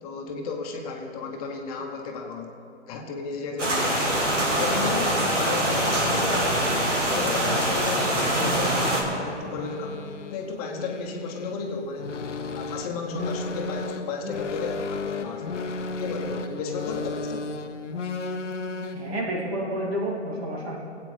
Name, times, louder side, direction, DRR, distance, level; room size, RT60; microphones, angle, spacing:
voice 1, 0.0-2.5 2.9-4.2 4.6-12.2 12.5-15.6 16.0-17.5, left 4 dB, 30° left, 2 dB, 1.0 m, -33 dB
sound 1, 3.6-9.0, right 1 dB, 90° right, 2.2 m, -24 dB
sound 2, 4.8-19.2, left 3 dB, 85° left, 0.8 m, -35 dB
voice 2, 18.9-20.8, right 1 dB, 60° right, -2 dB, 2.6 m, -30 dB
17.0 x 8.5 x 3.3 m, 2.9 s
figure-of-eight pair, 130°, 36 cm